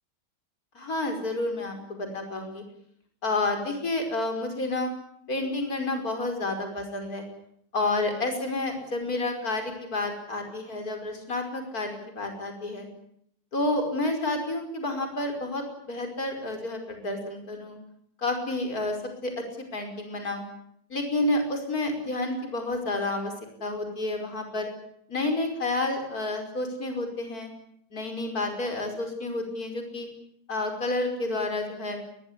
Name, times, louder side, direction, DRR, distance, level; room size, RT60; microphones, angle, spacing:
voice 1, 0.8-2.6 3.2-4.9 5.3-7.2 7.7-12.9 13.5-17.8 18.2-19.0 19.2-19.4 19.7-20.4 20.9-23.3 23.6-24.7 25.1-27.5 27.9-30.1 30.5-32.0, left 2 dB, 40° left, 5 dB, 5.7 m, -30 dB
22.0 x 21.0 x 9.9 m, 0.71 s
omnidirectional pair, 2.3 m